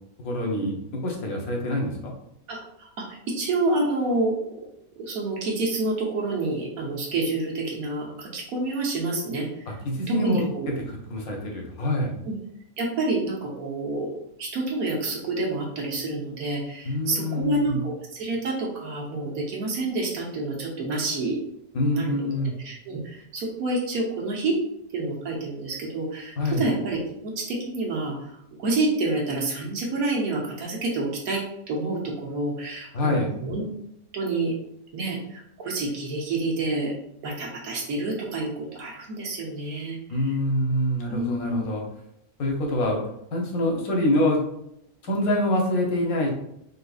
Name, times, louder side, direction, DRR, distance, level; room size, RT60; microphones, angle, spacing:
voice 1, 0.2-2.1 9.8-10.5 11.1-12.1 16.8-17.8 21.7-22.5 26.4-26.7 32.9-33.3 40.1-41.8 42.4-43.0 43.3-44.4 45.0-46.3, left 1 dB, 90° left, 0 dB, 1.3 m, -25 dB
voice 2, 2.5-4.4 5.0-9.5 10.1-10.7 12.3-12.4 12.8-14.1 14.4-21.4 21.8-22.3 22.6-24.6 24.9-28.3 28.6-33.7 34.1-34.5 34.9-36.9 37.2-40.2 41.1-41.7, right 2 dB, 85° right, -2 dB, 1.3 m, -28 dB
3.9 x 2.7 x 2.3 m, 0.77 s
omnidirectional pair, 1.5 m